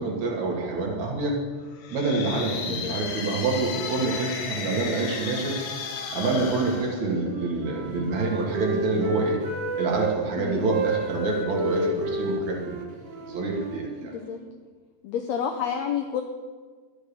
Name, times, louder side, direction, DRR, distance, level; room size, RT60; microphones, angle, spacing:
voice 1, 0.0-1.4 1.9-5.6 6.1-9.4 9.8-12.8 13.2-14.1, right 3 dB, 60° right, -1 dB, 2.8 m, -27 dB
sound 1, 1.7-7.7, left 6 dB, 65° left, 2.2 m, -34 dB
Wind instrument woodwind instrument, 7.2-10.2 10.6-14.5, right 2 dB, 80° right, 3.0 m, -31 dB
voice 2, 14.0-14.4 15.0-16.2, left 8 dB, 85° left, 4 dB, 1.5 m, -29 dB
12.0 x 6.5 x 6.8 m, 1.5 s
omnidirectional pair, 3.8 m